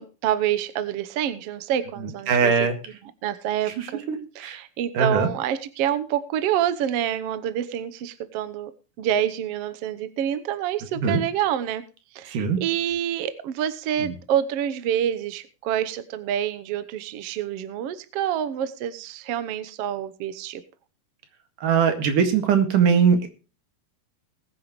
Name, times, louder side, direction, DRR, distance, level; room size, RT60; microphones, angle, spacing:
voice 1, 0.0-2.5 3.2-4.0 4.3-8.7 9.0-11.8 12.1-20.6, right 10 dB, 90° right, 11 dB, 1.3 m, -27 dB
voice 2, 2.0-2.8 3.7-4.6 4.9-5.3 11.0-11.2 12.3-12.6 14.0-14.1 21.6-23.3, right 6 dB, 65° right, 6 dB, 3.4 m, -21 dB
20.5 x 9.4 x 3.1 m, 0.35 s
omnidirectional pair, 4.2 m